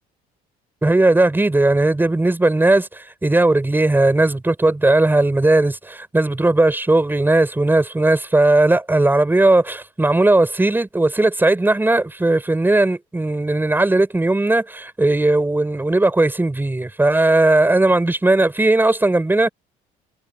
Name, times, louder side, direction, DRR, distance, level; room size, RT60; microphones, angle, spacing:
voice 1, 0.8-19.5, right 2 dB, 10° right, 6.6 m, -17 dB
cardioid pair, 110°, 17 cm